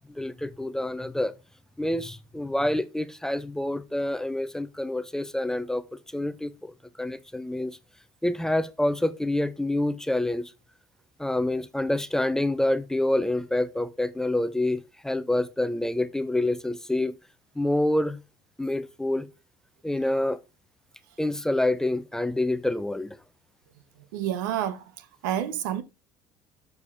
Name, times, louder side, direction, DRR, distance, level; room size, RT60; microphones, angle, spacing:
voice 1, 0.1-1.3 1.8-5.8 6.1-6.7 7.0-7.8 8.2-10.5 11.2-17.1 17.6-18.2 18.6-19.3 19.8-20.4 21.2-23.2, left 1 dB, 5° left, 0.6 m, -27 dB
voice 2, 24.1-24.8 25.2-25.8, right 10 dB, 90° right, 1.0 m, -28 dB
6.7 x 4.8 x 3.5 m
supercardioid pair, 105°, 10 cm